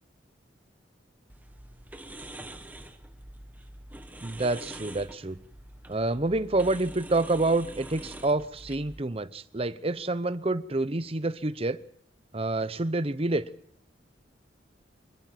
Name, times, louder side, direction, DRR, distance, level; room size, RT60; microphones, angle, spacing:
sound 1, 1.3-9.0, right 1 dB, 10° right, 1.3 m, -45 dB
voice 1, 4.2-5.4 5.9-11.8 12.3-13.5, right 2 dB, 30° right, 0.8 m, -28 dB
26.0 x 13.5 x 7.6 m
head